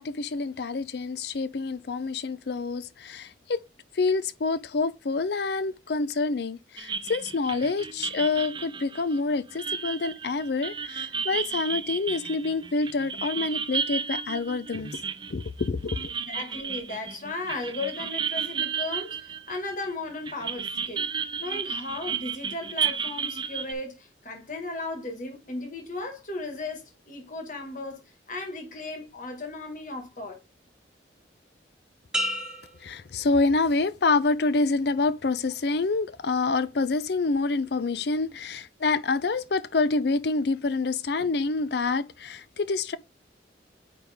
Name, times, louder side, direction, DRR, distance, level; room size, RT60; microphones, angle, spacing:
voice 1, 0.0-3.6 3.9-15.0 15.3-16.1 32.8-43.0, left 3 dB, 60° left, 0.5 m, -27 dB
sound 1, 6.8-19.9 20.3-23.7, right 7 dB, 25° right, 0.4 m, -33 dB
voice 2, 16.2-21.1 21.4-30.4 38.3-38.4, left 2 dB, 45° left, 1.7 m, -36 dB
sound 2, 32.1-33.9 34.4-34.9, equal, 5° right, 0.9 m, -34 dB
8.7 x 3.4 x 3.5 m
head